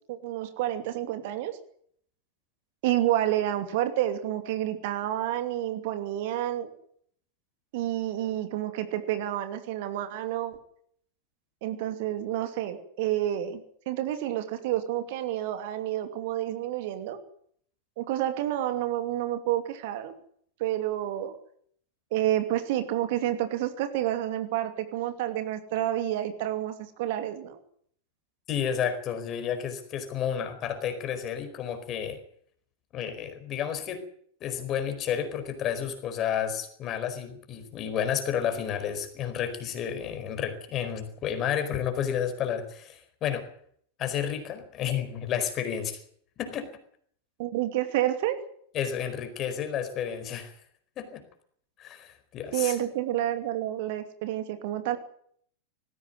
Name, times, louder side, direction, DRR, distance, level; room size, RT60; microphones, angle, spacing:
voice 1, 0.1-1.6 2.8-6.7 7.7-10.6 11.6-13.6 13.9-17.2 18.0-20.1 20.6-21.3 22.1-26.7 27.0-27.6 47.4-48.4 52.5-55.0, right 13 dB, 50° right, 8 dB, 2.7 m, -29 dB
voice 2, 28.5-32.2 32.9-34.0 34.4-43.5 44.0-46.0 46.4-46.7 48.7-50.5 51.0-51.2 51.8-52.8, left 8 dB, 35° left, 9 dB, 4.6 m, -31 dB
19.5 x 15.5 x 9.5 m, 0.63 s
figure-of-eight pair, 90°, 0 cm